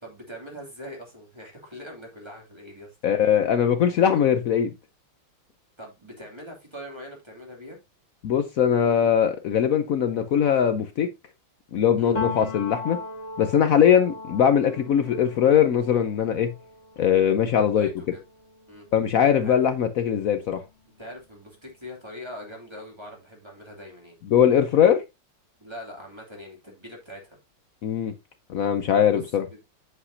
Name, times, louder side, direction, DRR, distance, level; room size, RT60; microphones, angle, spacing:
voice 1, 0.0-3.0 5.8-7.8 12.0-12.2 17.7-18.2 18.7-18.9 19.4-19.6 21.0-24.2 25.6-27.4 29.1-29.2 29.5-29.6, equal, 10° right, 2.6 m, -42 dB
voice 2, 3.0-4.7 8.2-11.1 11.7-13.0 13.4-16.5 17.0-17.9 18.9-20.6 24.3-25.0 27.8-28.1 28.5-29.4, left 8 dB, 80° left, 0.7 m, -21 dB
Piano, 12.1-19.8 20.1-21.7, left 3 dB, 35° left, 1.9 m, -39 dB
8.1 x 7.8 x 2.7 m
omnidirectional pair, 2.3 m